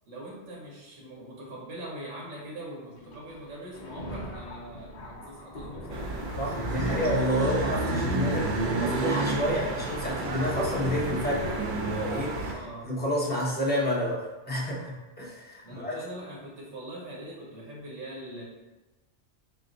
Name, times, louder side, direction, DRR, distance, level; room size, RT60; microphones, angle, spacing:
voice 1, 0.1-6.3 12.4-12.9 15.6-18.4, right 1 dB, 90° right, -3 dB, 1.2 m, -42 dB
Thunder, 3.0-12.9 13.6-13.7 14.8-14.9 15.7-15.8, equal, 50° left, 0.6 m, -45 dB
sound 1, 5.9-12.5, right 2 dB, 60° right, 0.5 m, -30 dB
voice 2, 6.4-12.5 12.8-16.0, equal, 10° left, -5 dB, 0.6 m, -30 dB
4.5 x 2.1 x 3.8 m, 1.1 s
omnidirectional pair, 1.2 m